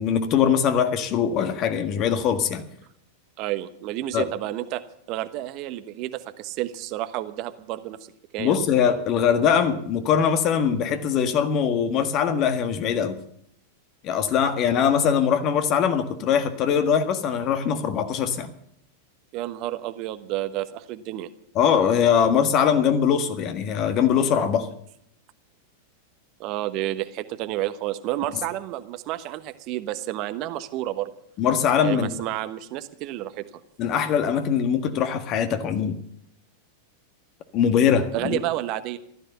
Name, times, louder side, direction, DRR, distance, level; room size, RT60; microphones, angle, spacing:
voice 1, 0.0-2.6 4.1-4.3 8.4-13.2 14.0-18.5 21.5-24.7 31.4-32.2 33.8-36.0 37.5-38.4, left 7 dB, 40° left, 8 dB, 1.7 m, -22 dB
voice 2, 3.4-4.8 5.1-8.0 8.3-8.6 19.3-21.3 26.4-31.1 31.8-33.5 38.1-39.0, right 14 dB, 45° right, 11 dB, 1.1 m, -30 dB
15.5 x 12.5 x 6.8 m, 0.72 s
figure-of-eight pair, 90°, 0 cm